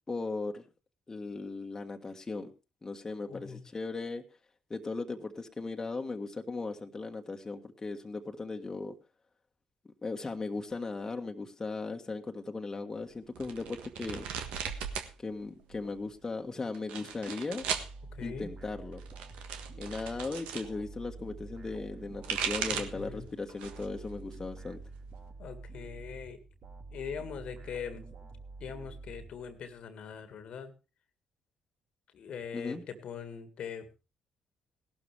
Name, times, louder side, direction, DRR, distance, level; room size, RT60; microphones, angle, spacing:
voice 1, 0.1-0.6 1.1-2.5 2.8-4.2 4.7-8.9 10.0-14.3 15.2-17.6 18.2-19.0 19.8-24.8 32.5-32.8, left 3 dB, 25° left, 3 dB, 1.6 m, -37 dB
voice 2, 3.3-3.6 18.1-18.5 22.7-23.3 25.4-26.4 26.9-28.0 28.6-30.7 32.1-33.9, left 7 dB, 60° left, 10 dB, 1.8 m, -42 dB
sound 1, 13.4-15.1 15.4-16.1 16.7-17.9 18.9-20.7 21.9-23.0 23.5-23.9 24.3-25.3, right 7 dB, 70° right, 1.5 m, -37 dB
sound 2, 17.6-29.8, right 3 dB, 50° right, 2.5 m, -47 dB
17.5 x 12.5 x 3.4 m, 0.31 s
hypercardioid pair, 45°, 2 cm